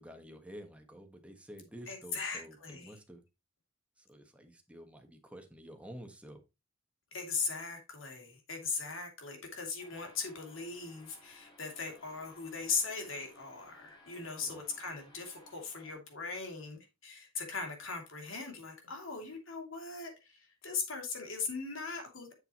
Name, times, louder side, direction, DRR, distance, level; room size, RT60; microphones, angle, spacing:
voice 1, 0.0-3.2 4.0-6.4 14.4-14.6, equal, 5° right, 1.4 m, -50 dB
voice 2, 1.9-2.9 7.1-22.3, left 4 dB, 70° left, 2.8 m, -39 dB
sound 1, 9.8-16.0, left 1 dB, 20° left, 3.7 m, -60 dB
7.9 x 6.8 x 3.0 m
head